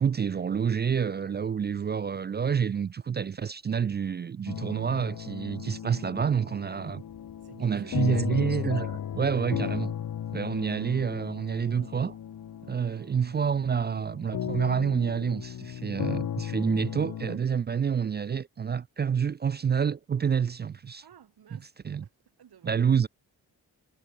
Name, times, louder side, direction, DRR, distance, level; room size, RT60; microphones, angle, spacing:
voice 1, 0.0-7.0 7.6-9.9 10.3-12.2 12.7-21.0 21.8-22.0 22.6-23.1, right 7 dB, 30° right, 0.3 m, -28 dB
sound 1, 4.5-17.4, left 9 dB, 60° left, 1.0 m, -35 dB
voice 2, 7.4-8.2 21.0-22.8, right 9 dB, 80° right, 4.4 m, -55 dB
cardioid pair, 55°, 38 cm